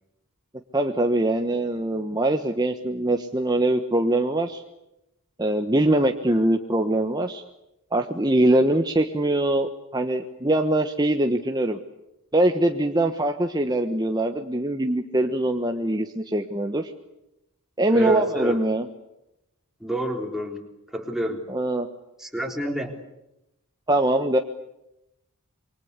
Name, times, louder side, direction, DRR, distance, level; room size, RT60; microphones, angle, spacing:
voice 1, 0.7-4.6 5.4-7.4 7.9-11.8 12.3-16.9 17.8-18.9 21.5-21.9 23.9-24.4, right 1 dB, 20° right, 4 dB, 1.2 m, -22 dB
voice 2, 17.9-18.6 19.8-20.6 20.9-21.5 22.2-23.0, right 1 dB, ahead, 2 dB, 3.6 m, -29 dB
27.5 x 24.0 x 8.3 m, 0.88 s
head